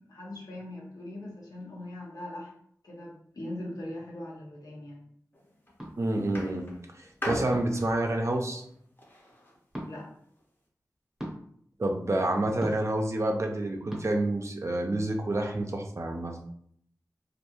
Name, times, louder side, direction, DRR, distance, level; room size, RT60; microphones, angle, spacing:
voice 1, 0.1-2.5 2.8-5.1 9.8-10.1, left 1 dB, 75° left, -3 dB, 0.8 m, -40 dB
sound 1, 5.3-5.7 6.3-9.6 10.4-10.5, left 1 dB, 30° left, 0.7 m, -38 dB
sound 2, 5.8-6.0 7.5-7.9 9.7-9.9 11.2-11.4 12.6-12.9 13.9-14.0, equal, 5° right, 0.8 m, -38 dB
voice 2, 6.0-6.7 6.9-8.6 11.8-16.4, right 1 dB, 50° right, 3 dB, 0.4 m, -28 dB
2.4 x 2.2 x 2.9 m, 0.66 s
wide cardioid pair, 55°, 6 cm